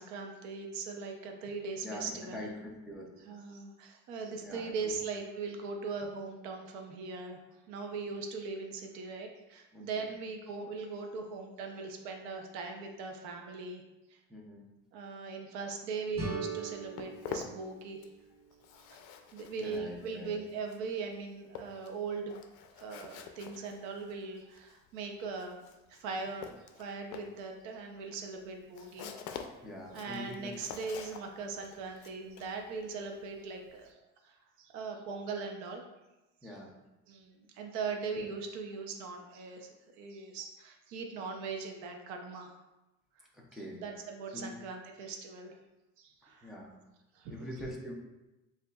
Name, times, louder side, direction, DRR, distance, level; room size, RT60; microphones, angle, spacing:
voice 1, 0.0-2.5 3.3-13.8 14.1-14.2 14.9-18.1 18.8-19.0 19.3-22.3 22.8-25.6 25.9-29.1 29.6-29.7 29.9-35.8 36.4-36.6 37.1-39.7 40.0-42.6 43.5-45.6 46.0-46.5 47.1-47.3, right 4 dB, 60° right, 3 dB, 0.6 m, -40 dB
voice 2, 1.8-3.1 4.4-5.0 9.7-10.1 14.3-14.6 19.6-20.3 29.6-30.5 36.4-36.7 38.2-38.3 43.3-43.8 44.3-44.5 46.4-46.7 47.3-47.9, left 1 dB, ahead, -4 dB, 0.3 m, -44 dB
sound 1, 16.1-19.0, right 4 dB, 20° right, 1.2 m, -41 dB
Walk footsteps, 16.5-18.3 18.5-33.9, left 7 dB, 75° left, 0.5 m, -47 dB
6.7 x 2.4 x 2.3 m, 1.0 s
cardioid pair, 180°, 32 cm